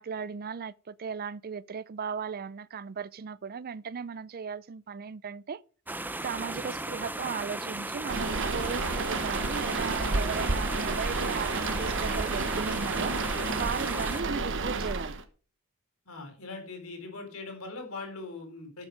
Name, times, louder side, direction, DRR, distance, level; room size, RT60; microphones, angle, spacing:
voice 1, 0.0-5.6 6.2-13.2 13.6-15.2, right 6 dB, 45° right, 0.5 m, -37 dB
sound 1, 5.9-14.2, right 2 dB, 10° right, 0.7 m, -36 dB
sound 2, 8.1-15.2, right 3 dB, 60° right, 1.2 m, -31 dB
voice 2, 16.1-18.9, left 3 dB, 75° left, 4.2 m, -41 dB
12.5 x 7.6 x 4.8 m
head